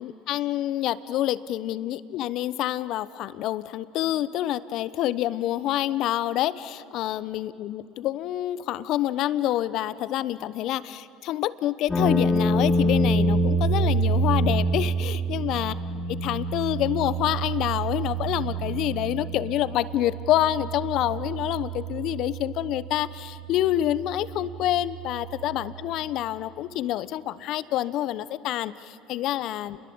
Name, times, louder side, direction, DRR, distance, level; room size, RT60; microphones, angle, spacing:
voice 1, 0.0-15.7 16.1-29.8, left 13 dB, 60° left, 16 dB, 1.0 m, -27 dB
sound 1, 11.9-25.9, right 2 dB, 20° left, 3.5 m, -27 dB
30.0 x 22.0 x 8.7 m, 2.7 s
hypercardioid pair, 80°, 0 cm